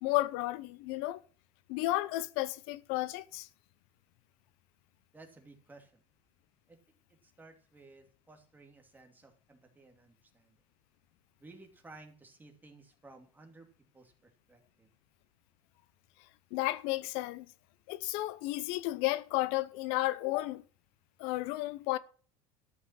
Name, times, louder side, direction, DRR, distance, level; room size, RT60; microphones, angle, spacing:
voice 1, 0.0-1.2 1.7-3.5 16.5-17.5 17.9-20.6 21.2-22.0, left 18 dB, 85° left, 0.8 m, -32 dB
voice 2, 5.1-6.0 6.7-6.8 7.1-10.6 11.4-13.7 13.9-14.9, right 3 dB, 15° right, 2.7 m, -56 dB
13.0 x 5.7 x 7.6 m
cardioid pair, 135°, 14 cm